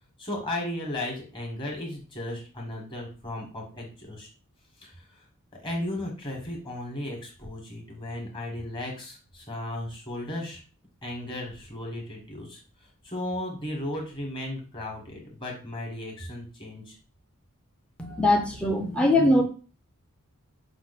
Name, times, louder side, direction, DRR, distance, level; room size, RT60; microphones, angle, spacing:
voice 1, 0.2-4.3 4.8-5.2 5.6-10.6 11.0-17.0, left 1 dB, 20° left, -1 dB, 1.3 m, -35 dB
voice 2, 18.0-19.4, left 1 dB, 5° left, 0 dB, 0.5 m, -21 dB
5.8 x 2.1 x 4.1 m, 0.37 s
head